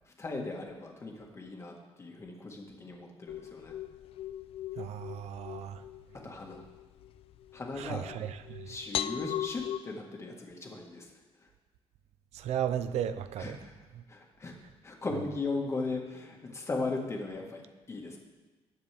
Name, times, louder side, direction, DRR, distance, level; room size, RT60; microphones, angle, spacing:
voice 1, 0.0-3.7 6.2-6.6 7.5-8.1 8.6-11.1 11.4-11.5 13.4-13.7 14.1-14.5 14.8-17.6 17.9-18.2, left 3 dB, 25° left, 0 dB, 1.7 m, -37 dB
sound 1, 3.3-9.8, left 11 dB, 60° left, 0.4 m, -39 dB
voice 2, 4.8-5.8 7.8-8.7 12.3-13.5, right 10 dB, 85° right, 12 dB, 0.6 m, -35 dB
20.0 x 7.4 x 3.5 m, 1.3 s
cardioid pair, 155°, 11 cm